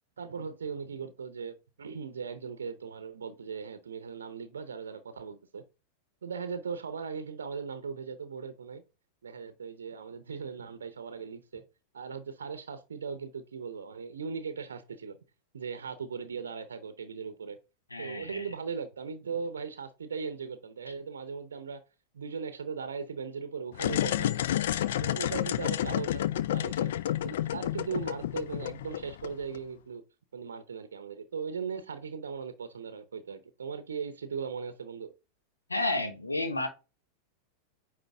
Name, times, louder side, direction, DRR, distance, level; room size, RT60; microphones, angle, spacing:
voice 1, 0.2-5.6 6.2-8.8 9.2-11.6 11.9-15.2 15.5-17.6 18.0-21.8 22.1-24.4 25.0-26.9 27.2-30.0 30.3-35.1, right 5 dB, 70° right, 0.7 m, -38 dB
voice 2, 17.9-18.4 35.7-36.7, left 2 dB, 80° left, 1.3 m, -31 dB
sound 1, 23.7-29.6, left 12 dB, 60° left, 0.3 m, -30 dB
9.1 x 3.3 x 3.4 m
figure-of-eight pair, 90°, 0 cm